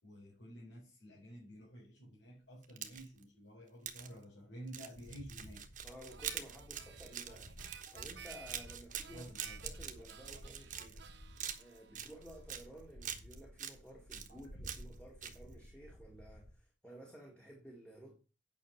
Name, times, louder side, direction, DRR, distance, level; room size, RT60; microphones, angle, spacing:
voice 1, 0.0-5.6 7.8-7.9 9.1-9.6 14.3-14.4, equal, 80° left, 4.2 m, -52 dB
sound 1, 2.6-3.2 3.9-4.1 4.7-11.1 11.4-12.7 13.0-13.8 14.1-14.9 15.2-15.4, right 9 dB, 45° right, 1.3 m, -44 dB
sound 2, 4.9-16.5, equal, 50° left, 1.4 m, -54 dB
voice 2, 5.8-9.3 9.6-11.1 11.6-18.2, right 1 dB, 5° left, 1.9 m, -54 dB
Harmonica, 6.1-12.6, right 7 dB, 65° right, 0.9 m, -56 dB
9.2 x 6.2 x 5.8 m
head